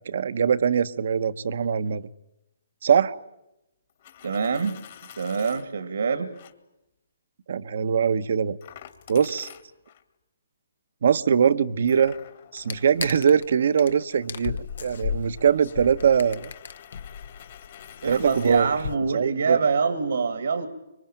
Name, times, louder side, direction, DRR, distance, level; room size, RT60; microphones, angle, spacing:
voice 1, 0.1-2.1 2.8-3.2 7.5-8.6 9.1-9.5 11.0-12.1 12.5-16.5 18.1-18.7 19.1-19.6, right 7 dB, 65° right, 14 dB, 1.1 m, -22 dB
Coin (dropping), 3.9-5.6 6.3-6.5 8.6-10.0 11.9-18.6, left 10 dB, 50° left, 2.3 m, -48 dB
voice 2, 4.2-4.8 5.2-6.3 18.0-20.7, right 5 dB, 80° right, 10 dB, 2.3 m, -25 dB
sound 1, 12.6-13.5 13.8-13.9 14.2-19.0, left 6 dB, 70° left, 1.1 m, -35 dB
25.5 x 23.5 x 9.0 m, 0.91 s
hypercardioid pair, 145°, 0 cm